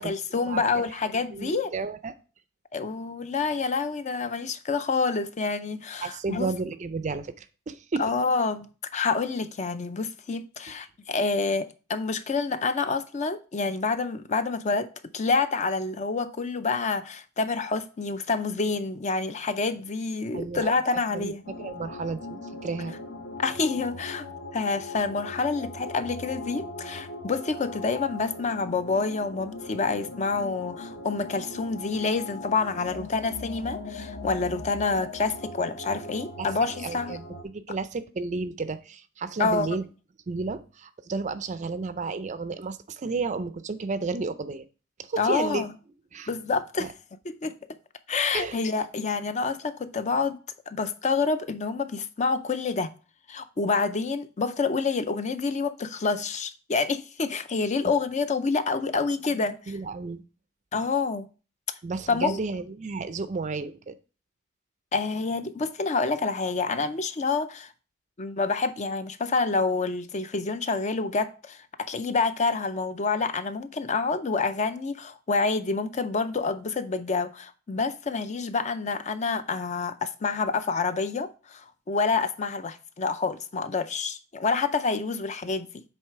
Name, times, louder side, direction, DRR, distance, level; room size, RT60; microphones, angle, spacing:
voice 1, 0.0-1.7 2.7-6.5 8.0-21.4 23.4-24.3 24.5-37.2 39.4-39.8 45.2-45.7 46.3-46.9 47.2-47.6 48.1-50.4 50.7-52.9 53.3-59.8 60.7-61.3 62.1-62.4 64.9-67.7 68.2-85.8, left 4 dB, 35° left, 0.4 m, -28 dB
voice 2, 1.3-2.1 6.0-8.1 20.3-20.7 21.1-21.3 21.6-23.0 36.4-36.5 36.8-39.8 40.3-44.6 45.1-45.7 46.1-46.3 46.8-46.9 48.3-48.6 57.8-57.9 59.4-60.2 61.8-63.9, right 4 dB, 35° right, 0.4 m, -32 dB
sound 1, 21.4-37.4, left 2 dB, 50° left, 0.9 m, -40 dB
7.8 x 3.2 x 4.6 m
head